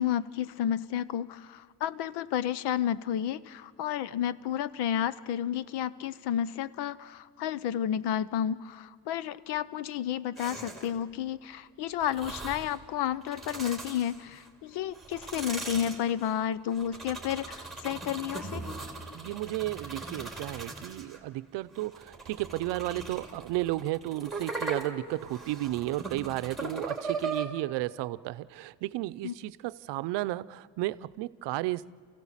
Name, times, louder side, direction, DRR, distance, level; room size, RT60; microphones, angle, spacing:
voice 1, 0.0-18.6 29.2-29.3, left 10 dB, 70° left, 17 dB, 0.8 m, -31 dB
Velociraptor Tongue Flicker, 10.4-11.0 12.0-12.8 13.2-14.5 14.9-21.2 21.7-27.4, right 3 dB, ahead, 2.4 m, -39 dB
voice 2, 19.1-31.9, right 17 dB, 90° right, 16 dB, 0.6 m, -33 dB
28.5 x 16.0 x 7.4 m, 2.1 s
cardioid pair, 165°, 41 cm